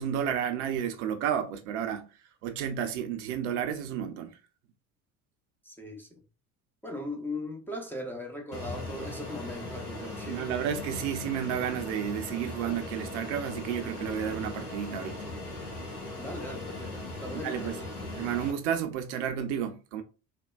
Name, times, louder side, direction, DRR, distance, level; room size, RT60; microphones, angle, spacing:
voice 1, 0.0-2.1 2.4-4.3 10.3-15.2 17.4-17.8 18.2-20.0, right 9 dB, 55° right, 0.5 m, -31 dB
voice 2, 5.6-6.2 6.8-10.5 16.2-17.9, left 1 dB, 5° left, 0.5 m, -39 dB
Fixed-wing aircraft airplane, 8.5-18.5, left 2 dB, 80° left, 0.8 m, -39 dB
3.4 x 2.2 x 2.2 m
figure-of-eight pair, 65°, 43 cm